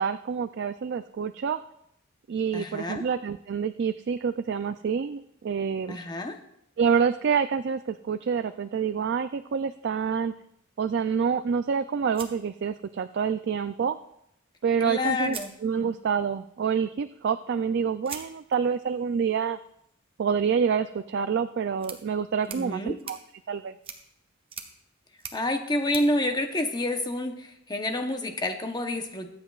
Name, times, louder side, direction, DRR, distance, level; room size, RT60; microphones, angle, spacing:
voice 1, 0.0-1.6 2.3-6.0 6.8-10.3 10.8-14.0 14.6-19.6 20.2-23.2 23.5-23.7, right 6 dB, 55° right, 11 dB, 0.3 m, -27 dB
voice 2, 2.5-3.0 5.9-6.4 14.8-15.5 22.5-23.0 25.3-29.3, left 1 dB, 20° left, 5 dB, 0.9 m, -28 dB
sound 1, 12.1-13.3 14.6-14.7 15.2-16.2 18.0-27.2, right 6 dB, 25° right, 0.9 m, -46 dB
23.0 x 8.0 x 2.4 m, 0.76 s
head